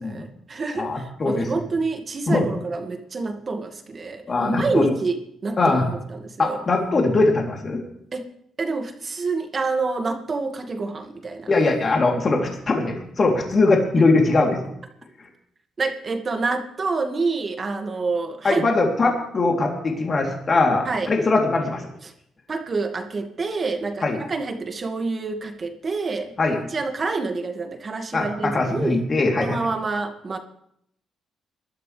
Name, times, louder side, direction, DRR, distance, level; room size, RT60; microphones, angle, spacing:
voice 1, 0.0-5.7 6.1-6.6 8.1-8.3 8.6-11.5 15.8-18.6 20.8-21.1 22.0-22.1 22.5-26.3 26.7-29.0 29.4-30.4, right 3 dB, 40° right, 5 dB, 2.1 m, -27 dB
voice 2, 0.7-1.5 2.3-2.4 4.3-4.9 5.6-5.9 6.4-7.8 11.5-14.6 18.4-21.9 24.0-24.2 26.4-26.6 28.1-29.6, left 3 dB, 40° left, 0 dB, 3.3 m, -21 dB
22.0 x 12.5 x 3.4 m, 0.71 s
cardioid pair, 85°, 0 cm